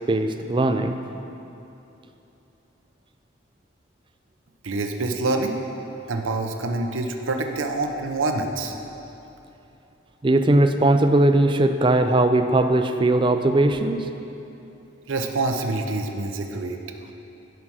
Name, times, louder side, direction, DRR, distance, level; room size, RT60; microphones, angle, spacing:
voice 1, 0.1-0.9 10.2-14.0, right 2 dB, 25° right, 7 dB, 0.4 m, -19 dB
voice 2, 4.6-5.6 6.1-8.7 15.1-16.8, right 2 dB, 85° right, 4 dB, 0.8 m, -26 dB
11.0 x 5.8 x 6.2 m, 3.0 s
head